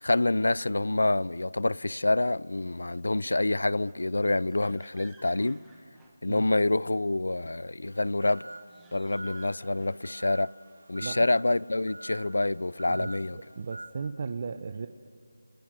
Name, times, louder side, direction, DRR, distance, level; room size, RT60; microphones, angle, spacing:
voice 1, 0.0-5.6 6.2-8.4 8.9-10.5 10.9-13.4, left 2 dB, 75° left, 0.6 m, -27 dB
sound 1, 3.6-6.8 8.4-10.4, right 4 dB, 5° right, 1.5 m, -60 dB
sound 2, 7.8-13.9, right 3 dB, 55° right, 2.1 m, -45 dB
voice 2, 13.6-14.9, right 5 dB, 30° right, 0.9 m, -35 dB
29.5 x 26.5 x 7.6 m
figure-of-eight pair, 170°, 0 cm